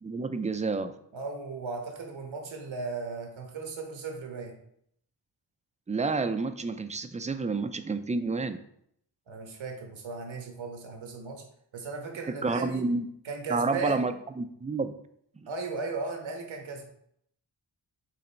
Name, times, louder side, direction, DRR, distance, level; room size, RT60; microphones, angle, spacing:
voice 1, 0.0-0.9 5.9-8.6 12.3-13.0 13.5-14.9 15.4-15.5, right 3 dB, 15° right, 9 dB, 0.4 m, -29 dB
voice 2, 1.1-4.5 9.3-11.4 11.7-12.8 13.2-14.1 15.5-16.8, right 3 dB, 90° right, 2 dB, 1.3 m, -36 dB
6.6 x 3.2 x 4.4 m, 0.70 s
wide cardioid pair, 95°, 45 cm